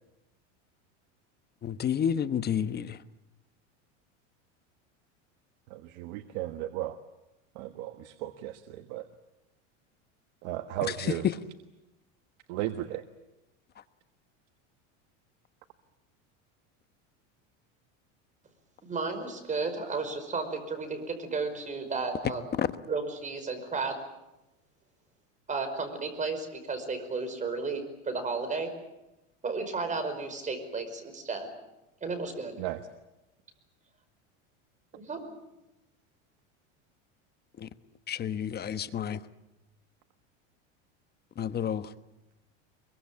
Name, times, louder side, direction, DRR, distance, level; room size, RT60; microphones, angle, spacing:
voice 1, 1.6-3.0 22.6-22.7 37.6-37.7 38.1-39.2 41.4-41.9, left 8 dB, 25° left, 12 dB, 1.1 m, -30 dB
voice 2, 5.7-7.0 7.5-9.1 10.4-11.3 12.5-13.0 32.6-32.9, right 14 dB, 65° right, 8 dB, 1.5 m, -35 dB
voice 3, 18.8-22.5 22.9-24.0 25.5-28.7 29.4-31.5 32.0-32.6 34.9-35.2, right 4 dB, 20° right, 7 dB, 5.2 m, -33 dB
24.5 x 23.0 x 8.6 m, 0.96 s
supercardioid pair, 125°, 36 cm